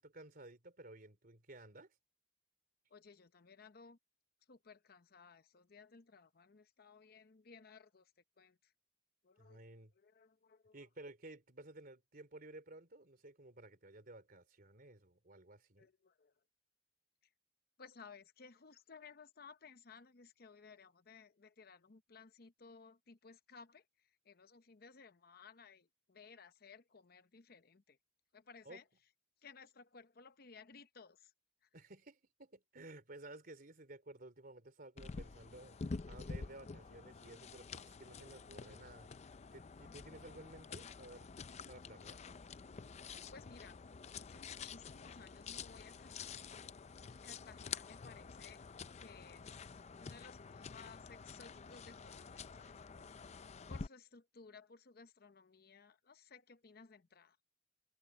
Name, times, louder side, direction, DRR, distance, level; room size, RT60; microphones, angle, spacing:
voice 1, 0.0-1.9 9.4-9.9 10.7-15.9 28.6-28.8 31.7-35.8 36.1-41.3 41.7-42.2, right 2 dB, 50° right, 3.5 m, -55 dB
voice 2, 2.9-4.0 4.5-8.1 8.4-8.7 9.2-9.6 9.9-10.7 15.8-16.3 17.8-23.8 24.2-28.0 28.3-28.8 29.4-31.3 43.3-43.8 44.2-46.7 47.2-48.6 49.0-53.1 53.4-57.5, left 5 dB, 55° left, 0.8 m, -59 dB
sound 1, 35.0-53.9, left 5 dB, 35° left, 0.5 m, -49 dB
head